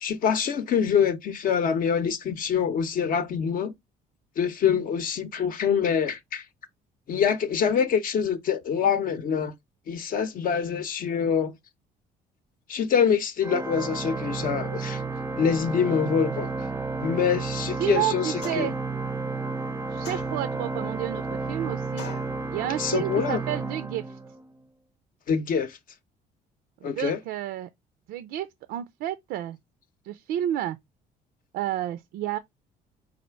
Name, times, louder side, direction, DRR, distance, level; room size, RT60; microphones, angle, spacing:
voice 1, 0.0-3.7 4.4-6.4 7.1-9.5 9.9-11.5 12.7-15.0 15.4-16.5 17.0-18.7 22.8-23.4 25.3-25.8 26.8-27.2, left 7 dB, 55° left, 0.7 m, -25 dB
Organ, 13.4-24.6, right 3 dB, 15° right, 0.5 m, -32 dB
voice 2, 17.8-18.8 19.9-22.1 22.5-24.2 26.8-27.7 28.1-29.6 30.0-30.8 31.5-32.4, right 12 dB, 80° right, 0.4 m, -30 dB
sound 1, 18.4-18.9 20.0-20.7 22.0-22.4, left 7 dB, 90° left, 0.9 m, -41 dB
4.2 x 2.4 x 4.4 m
cardioid pair, 110°, 17 cm